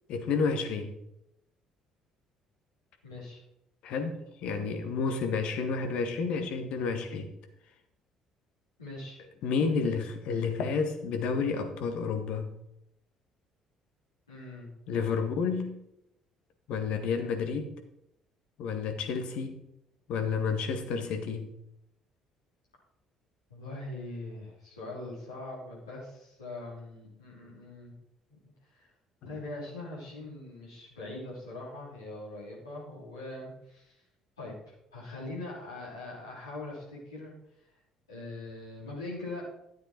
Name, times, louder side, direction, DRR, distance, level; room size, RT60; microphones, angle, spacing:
voice 1, 0.1-1.0 3.8-7.3 9.4-12.5 14.9-15.8 16.7-17.8 18.6-19.6 20.1-21.5, left 5 dB, 55° left, 1.6 m, -30 dB
voice 2, 3.0-3.4 8.8-9.2 14.3-14.7 23.5-27.9 28.3-28.4 28.7-28.9 29.2-34.0 34.4-37.3 38.1-39.4, left 2 dB, 80° left, 3.6 m, -42 dB
12.5 x 8.2 x 4.5 m
figure-of-eight pair, 50°, 2 cm